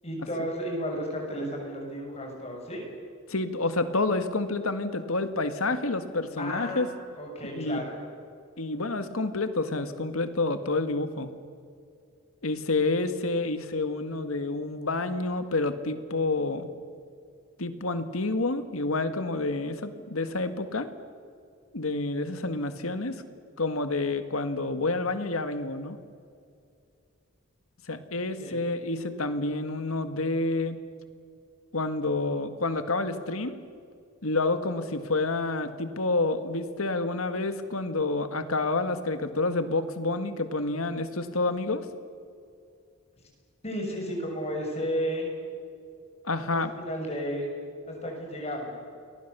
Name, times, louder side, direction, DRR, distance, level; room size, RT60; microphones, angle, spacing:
voice 1, 0.0-2.8 6.4-6.9 7.2-8.0 28.4-28.6 43.6-45.3 46.4-47.5 47.9-48.8, equal, 30° left, 1 dB, 6.5 m, -33 dB
voice 2, 3.3-6.9 7.5-7.8 8.6-11.3 12.4-16.7 17.6-20.9 21.7-23.2 23.6-26.0 27.9-30.8 31.7-33.6 34.2-41.9 46.2-46.7, left 2 dB, 90° left, 9 dB, 1.9 m, -29 dB
30.0 x 21.5 x 6.9 m, 2.3 s
head